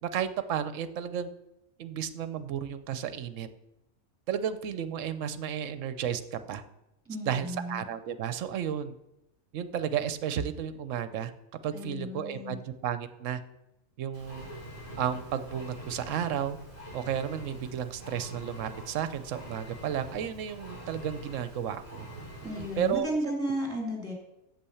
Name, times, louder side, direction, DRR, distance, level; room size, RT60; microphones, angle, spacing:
voice 1, 0.0-1.3 1.8-3.5 4.3-6.6 7.3-8.9 9.5-11.3 11.6-13.4 14.0-14.5 15.0-16.6 16.9-22.1 22.6-23.1, right 9 dB, 65° right, 12 dB, 1.0 m, -33 dB
voice 2, 7.1-7.8 11.7-12.6 22.4-24.1, equal, 10° right, -1 dB, 2.8 m, -34 dB
Engine, 14.1-23.0, right 1 dB, 25° left, 4.5 m, -45 dB
8.6 x 7.6 x 7.0 m, 0.90 s
omnidirectional pair, 1.5 m